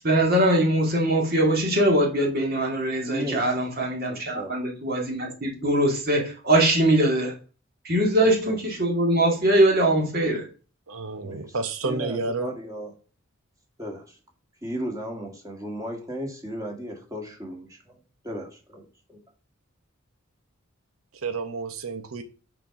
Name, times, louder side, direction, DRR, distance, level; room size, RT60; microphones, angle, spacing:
voice 1, 0.0-7.3 7.8-10.4, right 1 dB, 45° right, 2.2 m, -22 dB
voice 2, 3.0-3.6 4.1-4.5 8.2-8.6 11.2-11.6 11.8-12.9 13.8-14.2 14.6-19.2, equal, 15° right, 1.9 m, -35 dB
voice 3, 10.9-12.5 21.1-22.2, right 4 dB, 90° right, 1.0 m, -30 dB
5.9 x 4.6 x 5.9 m
head